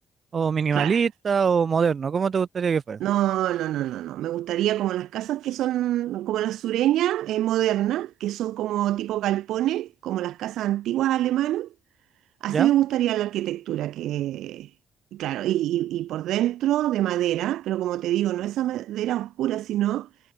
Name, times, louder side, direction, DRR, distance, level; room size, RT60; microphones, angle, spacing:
voice 1, 0.3-3.0 12.5-12.7, right 6 dB, 45° right, 3.3 m, -23 dB
voice 2, 3.0-11.7 12.4-14.7 15.1-20.1, right 13 dB, 85° right, 4.8 m, -25 dB
cardioid pair, 90°, 0 cm